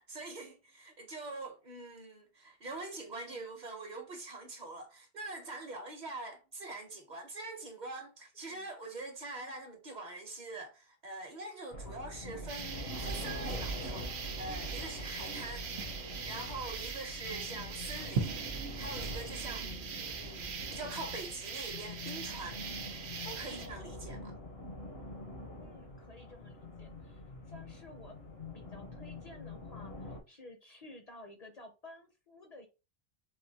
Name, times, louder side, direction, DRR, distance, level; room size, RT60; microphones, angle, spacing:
voice 1, 0.0-14.1 14.4-15.7 16.0-19.7 20.0-22.6 23.2-24.4, right 2 dB, 50° right, 0.8 m, -44 dB
voice 2, 3.1-3.5 8.4-8.7 19.5-20.1 23.4-23.8 25.6-28.2 28.5-32.7, left 1 dB, 45° left, 0.6 m, -54 dB
sound 1, 11.7-30.2, left 1 dB, 75° left, 1.2 m, -44 dB
sound 2, 12.5-23.7, right 5 dB, 90° right, 0.9 m, -41 dB
3.8 x 2.5 x 2.7 m
omnidirectional pair, 1.1 m